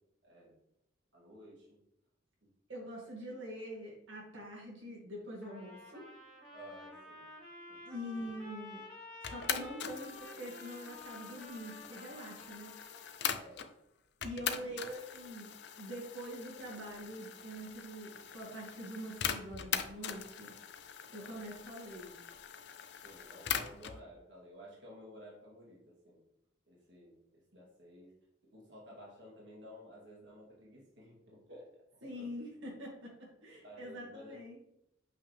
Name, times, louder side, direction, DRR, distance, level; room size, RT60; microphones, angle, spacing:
voice 1, 0.2-0.5 1.1-1.8 2.4-2.5 6.5-7.3 7.7-7.8 13.3-13.7 14.4-14.8 21.2-21.5 23.0-26.2 26.7-27.2 27.5-28.1 28.4-32.3 33.6-34.4, equal, 60° right, -5 dB, 2.1 m, -54 dB
voice 2, 2.7-6.1 7.8-8.8 9.2-13.0 14.2-15.5 15.8-20.5 21.1-22.2 32.0-34.6, equal, 75° right, -4 dB, 2.2 m, -45 dB
Trumpet, 5.4-13.1, left 2 dB, 5° left, 2.0 m, -52 dB
sound 1, 9.2-13.7 14.2-24.0, left 8 dB, 60° left, 0.5 m, -41 dB
6.8 x 5.6 x 3.4 m, 0.81 s
head